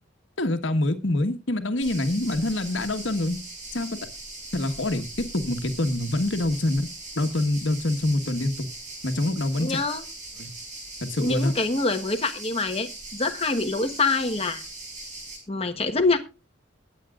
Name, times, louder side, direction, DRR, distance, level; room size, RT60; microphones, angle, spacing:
voice 1, 0.4-3.4 3.7-4.0 4.5-6.9 7.1-8.7 9.0-9.8 10.4-10.5 11.0-11.5, left 1 dB, 75° left, 1.4 m, -25 dB
sound 1, 1.8-15.4, right 2 dB, 40° right, 5.7 m, -40 dB
voice 2, 9.6-10.0 11.2-14.6 15.5-16.2, left 3 dB, 30° left, 1.3 m, -25 dB
21.5 x 8.4 x 2.4 m
head